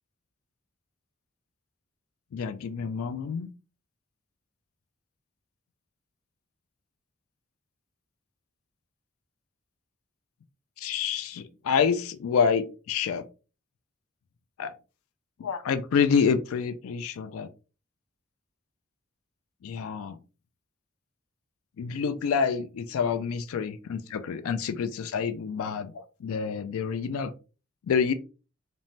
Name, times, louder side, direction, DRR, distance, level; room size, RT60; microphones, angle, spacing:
voice 1, 2.3-3.5 10.8-13.3 14.6-14.7 15.4-17.5 19.6-20.2 21.8-27.3 27.9-28.1, left 6 dB, 80° left, 11 dB, 0.3 m, -27 dB
2.6 x 2.1 x 3.0 m, 0.33 s
head